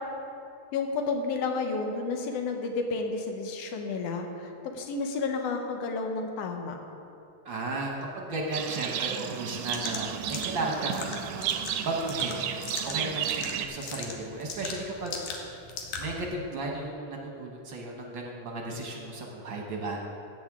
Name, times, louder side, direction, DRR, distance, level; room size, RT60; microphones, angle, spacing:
voice 1, 0.7-6.8, left 4 dB, 70° left, 4 dB, 1.9 m, -31 dB
voice 2, 7.4-11.2 11.8-12.4 12.8-15.1 16.0-20.0, right 2 dB, 55° right, 0 dB, 1.4 m, -34 dB
Livestock farm animals working animals, 8.5-13.7, right 9 dB, 80° right, 1.8 m, -33 dB
sound 1, 9.7-16.2, left 4 dB, 85° left, 2.5 m, -40 dB
15.0 x 8.7 x 3.7 m, 2.7 s
omnidirectional pair, 3.3 m